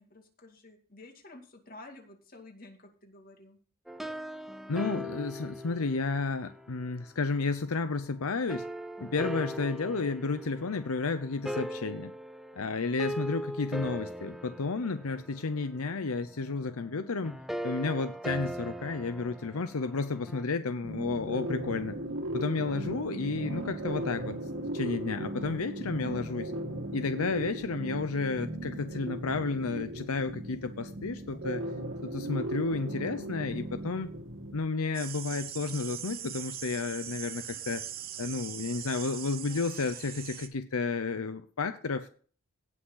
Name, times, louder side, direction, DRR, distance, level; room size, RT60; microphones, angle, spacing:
voice 1, 0.0-3.6, left 2 dB, 40° left, 3 dB, 2.3 m, -51 dB
sound 1, 3.9-7.2 8.5-20.5, equal, ahead, 0.4 m, -40 dB
voice 2, 4.7-8.7 9.0-12.1 12.6-17.4 17.6-22.0 22.3-24.4 24.7-26.5 26.9-31.6 32.0-34.1 34.5-37.8 38.2-42.1, left 4 dB, 80° left, 11 dB, 0.7 m, -32 dB
sound 2, 20.8-34.6, right 1 dB, 65° right, 1.9 m, -37 dB
sound 3, 34.9-40.5, right 10 dB, 45° right, 1.0 m, -41 dB
17.5 x 6.2 x 3.9 m, 0.43 s
head